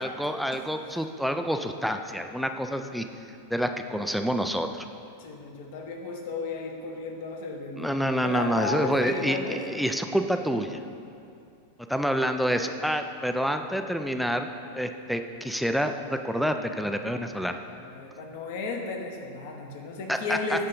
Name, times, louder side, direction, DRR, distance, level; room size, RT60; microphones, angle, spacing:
voice 1, 0.0-3.1 3.5-4.9 7.8-10.8 11.9-17.6 20.1-20.6, equal, ahead, 6 dB, 0.3 m, -28 dB
voice 2, 5.2-9.6 11.1-11.2 17.8-20.7, left 3 dB, 50° left, 2 dB, 0.8 m, -34 dB
9.3 x 3.2 x 5.2 m, 2.5 s
figure-of-eight pair, 90°, 0 cm